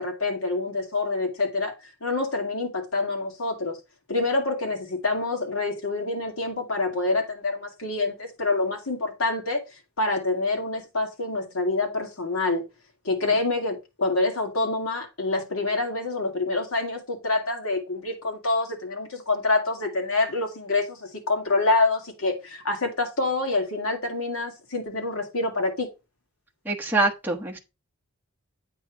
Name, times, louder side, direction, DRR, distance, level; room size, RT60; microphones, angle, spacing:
voice 1, 0.0-3.8 4.1-9.6 10.0-12.6 13.0-25.9, left 3 dB, 75° left, 2.1 m, -26 dB
voice 2, 26.7-27.6, right 2 dB, 10° right, 1.1 m, -24 dB
8.4 x 3.1 x 5.9 m
head